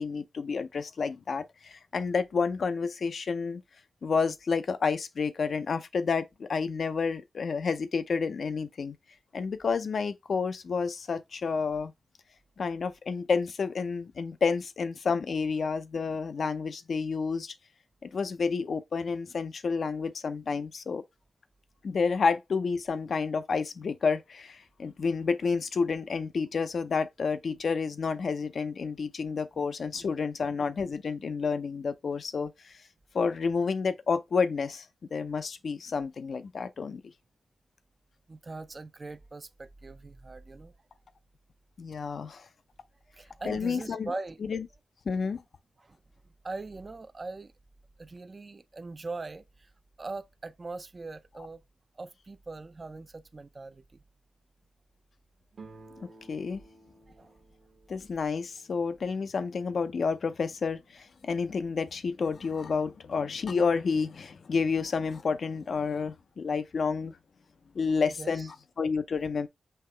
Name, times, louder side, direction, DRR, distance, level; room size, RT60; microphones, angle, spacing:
voice 1, 0.0-3.6 4.0-9.0 9.3-11.9 12.6-17.5 18.0-21.0 21.8-32.8 33.1-34.9 35.1-37.0 41.8-42.5 43.5-44.1 44.4-44.7 45.1-45.4 56.3-56.6 57.9-67.2 67.7-69.5, left 5 dB, 65° left, 0.5 m, -30 dB
voice 2, 38.3-40.7 43.2-44.4 45.8-46.0 46.4-47.5 48.0-49.7 50.0-51.6 52.0-54.0 57.1-57.3 68.2-68.5, right 3 dB, 35° right, 0.4 m, -41 dB
sound 1, 55.5-59.2, right 3 dB, 60° right, 1.0 m, -54 dB
5.6 x 2.9 x 3.2 m
cardioid pair, 70°, 0 cm